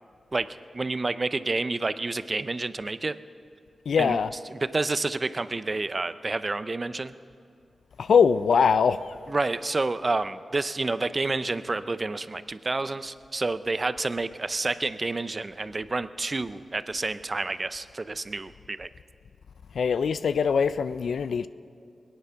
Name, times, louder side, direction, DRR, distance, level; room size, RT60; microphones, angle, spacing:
voice 1, 0.7-3.1 4.0-4.2 4.5-7.1 9.3-18.9, right 3 dB, 30° right, 0.5 m, -29 dB
voice 2, 3.9-4.3 8.0-9.2 19.7-21.5, left 6 dB, 85° left, 0.4 m, -22 dB
22.0 x 9.7 x 5.7 m
wide cardioid pair, 115°, 0 cm